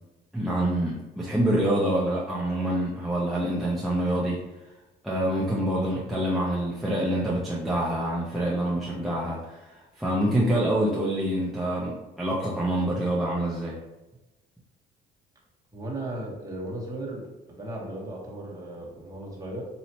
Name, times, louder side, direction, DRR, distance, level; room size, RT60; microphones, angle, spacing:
voice 1, 0.3-4.4 5.0-13.7, right 1 dB, ahead, -7 dB, 0.7 m, -26 dB
voice 2, 15.7-17.2 17.6-19.7, right 1 dB, 20° right, -4 dB, 1.3 m, -36 dB
4.3 x 2.8 x 2.9 m, 1.1 s
cardioid pair, 110°, 17 cm